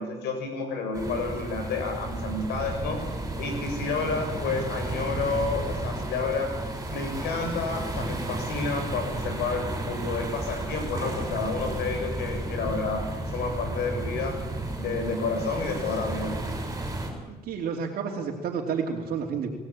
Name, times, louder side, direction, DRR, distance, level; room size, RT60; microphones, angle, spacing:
voice 1, 0.0-3.0 3.3-6.5 6.9-14.4 14.8-16.3, left 4 dB, 80° left, 5 dB, 7.6 m, -30 dB
sound 1, 0.9-17.1, right 2 dB, 20° right, 7.2 m, -33 dB
voice 2, 17.3-19.5, right 6 dB, 60° right, -1 dB, 3.0 m, -30 dB
26.5 x 17.0 x 9.0 m, 1.2 s
cardioid pair, 110°, 17 cm